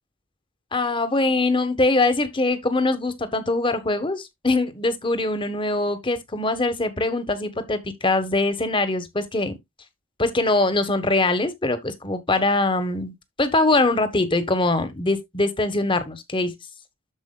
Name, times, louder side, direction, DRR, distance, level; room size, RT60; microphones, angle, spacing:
voice 1, 0.7-9.6 10.2-16.5, left 2 dB, 25° left, 1.2 m, -23 dB
13.5 x 4.8 x 2.2 m
head